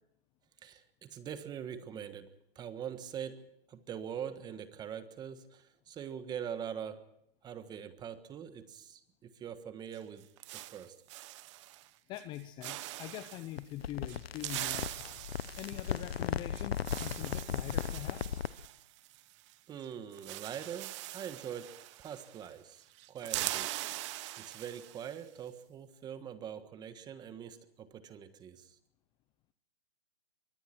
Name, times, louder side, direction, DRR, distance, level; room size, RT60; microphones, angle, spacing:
voice 1, 0.6-3.4 3.7-7.0 7.4-10.9 19.7-23.7 24.4-28.7, right 8 dB, 15° right, 11 dB, 1.4 m, -43 dB
sound 1, 9.9-11.9 12.2-12.4 12.6-13.5 14.1-19.5 19.8-19.9 20.1-22.5 22.8-25.2, right 17 dB, 30° right, 1.0 m, -42 dB
voice 2, 12.1-18.4, left 13 dB, 15° left, 12 dB, 0.7 m, -44 dB
sound 2, 13.6-18.6, left 8 dB, 80° left, 0.9 m, -37 dB
25.5 x 24.0 x 4.5 m, 0.81 s
hypercardioid pair, 145°, 30 cm